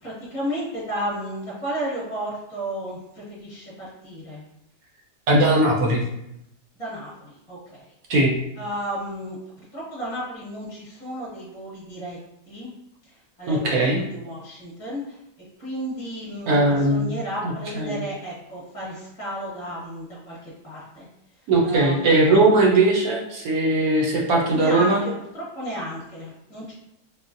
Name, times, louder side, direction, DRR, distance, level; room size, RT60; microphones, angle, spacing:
voice 1, 0.0-4.4 6.8-7.8 8.6-12.2 12.5-12.7 13.1-13.8 14.1-15.2 15.6-21.0 21.6-22.4 24.5-26.7, equal, 25° left, -7 dB, 1.0 m, -33 dB
voice 2, 5.3-6.0 8.1-8.4 13.5-14.0 16.5-17.1 17.4-18.0 21.5-25.0, right 2 dB, 70° right, -2 dB, 1.0 m, -19 dB
3.6 x 2.0 x 2.5 m, 0.81 s
omnidirectional pair, 1.8 m